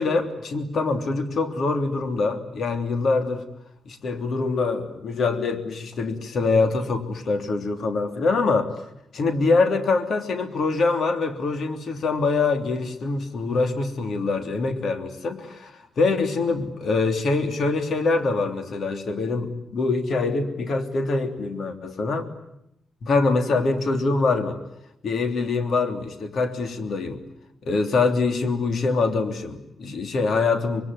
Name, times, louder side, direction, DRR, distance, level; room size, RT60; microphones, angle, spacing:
voice 1, 0.0-3.4 3.8-8.7 9.1-22.3 23.0-24.6 25.0-27.2 27.6-30.8, left 3 dB, 60° left, 8 dB, 3.1 m, -24 dB
26.0 x 21.5 x 9.6 m, 0.80 s
cardioid pair, 90°, 0 cm